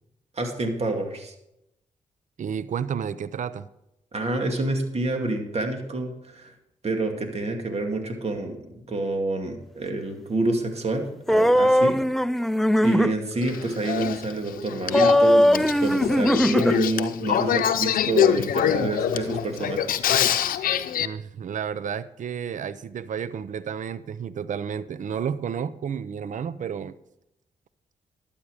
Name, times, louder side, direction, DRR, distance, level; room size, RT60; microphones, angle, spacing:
voice 1, 0.4-1.3 4.1-6.5 6.8-12.0 12.8-20.0, right 2 dB, 45° right, 3 dB, 2.4 m, -28 dB
voice 2, 2.4-3.7 21.0-26.9, right 7 dB, 65° right, 16 dB, 0.6 m, -31 dB
sound 1, 11.3-13.1 14.9-16.8, equal, ahead, 0.4 m, -19 dB
Male speech man speaking / Female speech woman speaking / Conversation, 13.4-21.1, left 9 dB, 85° left, 0.6 m, -25 dB
12.0 x 8.7 x 5.0 m, 0.82 s
cardioid pair, 60°, 14 cm